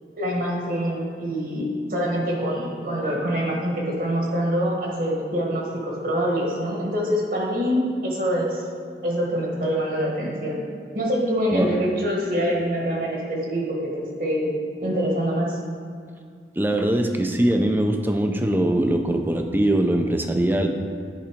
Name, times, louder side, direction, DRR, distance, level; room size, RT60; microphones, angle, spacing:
voice 1, 0.2-8.6 9.0-10.6 10.9-14.5 14.8-15.6, equal, 50° right, -2 dB, 1.6 m, -25 dB
voice 2, 16.6-20.7, right 1 dB, 10° right, 4 dB, 0.5 m, -22 dB
10.5 x 4.0 x 5.1 m, 2.3 s
head